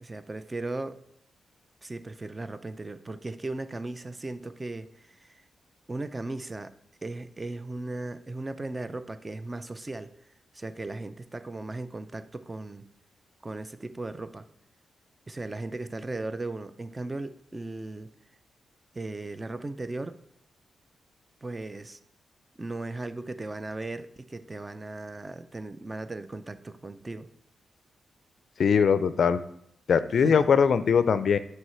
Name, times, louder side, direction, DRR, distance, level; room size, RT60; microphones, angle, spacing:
voice 1, 0.0-1.0 1.8-5.4 5.9-6.7 7.0-10.1 10.5-12.9 13.4-14.5 15.3-18.1 18.9-20.2 21.4-22.0 22.6-27.3 30.1-30.4, right 2 dB, 25° right, 11 dB, 0.5 m, -37 dB
voice 2, 28.6-29.4 29.9-31.4, left 6 dB, 65° left, 13 dB, 0.4 m, -21 dB
7.8 x 3.2 x 5.6 m, 0.73 s
cardioid pair, 70°, 0 cm